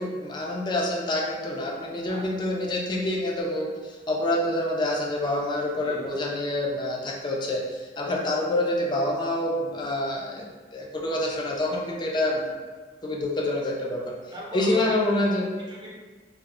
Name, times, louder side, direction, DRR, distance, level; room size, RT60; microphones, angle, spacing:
voice 1, 0.0-10.5 10.7-12.5 13.0-14.1 14.5-15.5, left 1 dB, 25° left, -1 dB, 0.3 m, -27 dB
voice 2, 2.1-2.4 5.8-6.2 14.3-15.9, equal, 25° right, -5 dB, 0.6 m, -40 dB
2.0 x 2.0 x 3.5 m, 1.4 s
head